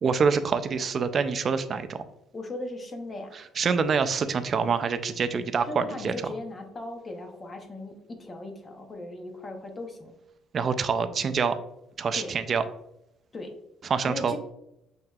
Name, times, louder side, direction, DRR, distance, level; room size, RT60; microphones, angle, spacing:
voice 1, 0.0-2.0 3.3-6.3 10.5-11.6 12.0-12.6 13.8-14.4, right 5 dB, 35° right, 10 dB, 0.3 m, -26 dB
voice 2, 2.3-3.4 5.7-10.1 12.1-12.3 13.3-13.5 14.0-14.4, left 2 dB, 25° left, 4 dB, 0.7 m, -38 dB
6.4 x 2.8 x 2.3 m, 0.83 s
cardioid pair, 145°, 0 cm